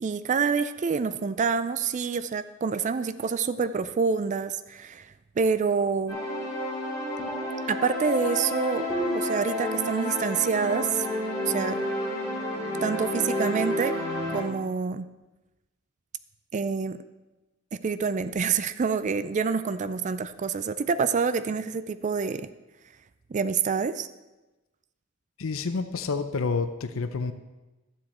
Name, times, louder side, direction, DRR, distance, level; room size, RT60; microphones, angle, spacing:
voice 1, 0.0-6.2 7.7-11.1 11.5-11.8 12.8-14.0 14.3-15.1 16.5-17.0 17.8-22.5 23.3-24.1, right 5 dB, 35° right, 12 dB, 0.4 m, -27 dB
sound 1, 6.1-14.4, left 1 dB, 15° left, 3.6 m, -30 dB
voice 2, 25.4-27.3, left 4 dB, 70° left, 10 dB, 0.6 m, -29 dB
12.0 x 7.7 x 4.3 m, 1.1 s
head